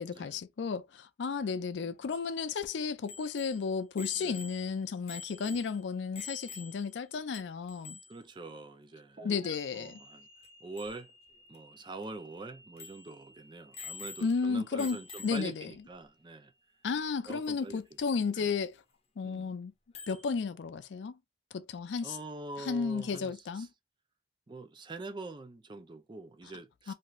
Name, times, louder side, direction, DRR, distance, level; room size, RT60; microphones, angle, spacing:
voice 1, 0.0-8.0 9.2-10.0 14.2-15.7 16.8-18.7 19.2-19.7 20.1-21.2 21.5-22.2 22.6-23.7 26.9-27.0, left 5 dB, 85° left, 0.4 m, -33 dB
Bicycle bell, 3.1-7.0 7.3-7.4 7.7-8.2 10.4-10.5 10.8-11.0 11.5-11.6 12.0-12.1 12.8-13.1 13.7-14.5 14.8-15.6 17.4-17.5 19.9-20.3, left 5 dB, 35° left, 0.6 m, -46 dB
voice 2, 8.1-9.3 9.7-10.3 10.6-11.1 11.5-16.5 17.3-17.8 18.3-18.5 19.2-19.5 22.0-23.7 24.5-26.9, right 2 dB, 25° right, 0.4 m, -44 dB
sound 1, 9.2-16.7, right 1 dB, 45° right, 0.9 m, -56 dB
2.6 x 2.4 x 3.0 m
head